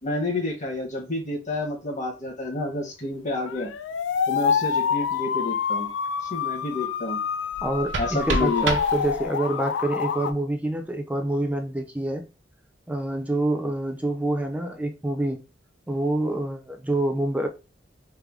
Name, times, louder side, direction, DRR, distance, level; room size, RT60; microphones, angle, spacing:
voice 1, 0.0-3.7 4.3-5.9 6.2-7.2 8.0-8.7, left 2 dB, 40° left, 1.3 m, -29 dB
sound 1, 3.5-10.3, left 7 dB, 80° left, 0.3 m, -27 dB
sound 2, 7.5-9.5, right 3 dB, 75° right, 0.6 m, -30 dB
voice 2, 7.6-7.9 8.4-12.2 12.9-15.4 15.9-17.5, right 1 dB, 10° right, 0.5 m, -26 dB
3.5 x 2.1 x 3.4 m
head